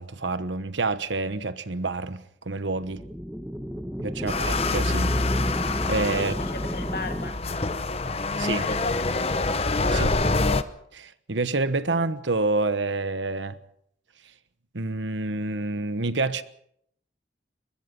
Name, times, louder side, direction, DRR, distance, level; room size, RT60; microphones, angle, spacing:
voice 1, 0.0-3.0 4.0-5.1 5.8-6.3 8.4-8.7 9.9-10.3 10.9-13.6 14.7-16.4, right 3 dB, 85° right, 1.2 m, -28 dB
sound 1, 2.8-7.3, equal, 5° right, 1.1 m, -33 dB
sound 2, 4.3-10.6, left 2 dB, 35° left, 0.9 m, -26 dB
voice 2, 6.2-7.6 8.6-9.4 9.9-10.5, left 3 dB, 55° left, 2.6 m, -37 dB
23.0 x 22.0 x 5.4 m
head